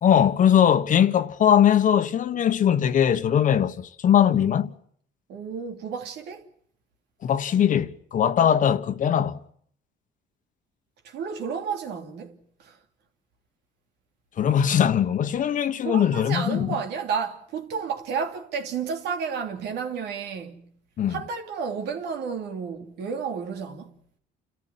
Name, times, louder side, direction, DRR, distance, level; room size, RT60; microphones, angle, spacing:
voice 1, 0.0-4.7 7.2-9.4 14.4-16.7 21.0-21.2, left 9 dB, 50° left, 1.3 m, -20 dB
voice 2, 5.3-6.5 11.0-12.8 15.8-20.7 21.1-23.9, right 6 dB, 80° right, 3.0 m, -31 dB
29.0 x 14.0 x 10.0 m
cardioid pair, 110°, 17 cm